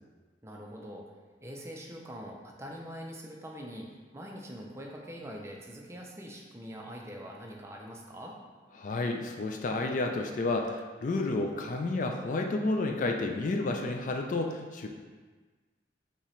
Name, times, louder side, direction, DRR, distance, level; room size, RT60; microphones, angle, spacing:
voice 1, 0.4-1.0 1.4-8.4, equal, 15° right, -1 dB, 0.5 m, -43 dB
voice 2, 8.8-14.9, left 2 dB, 45° left, 3 dB, 0.3 m, -31 dB
5.7 x 2.9 x 3.0 m, 1.4 s
head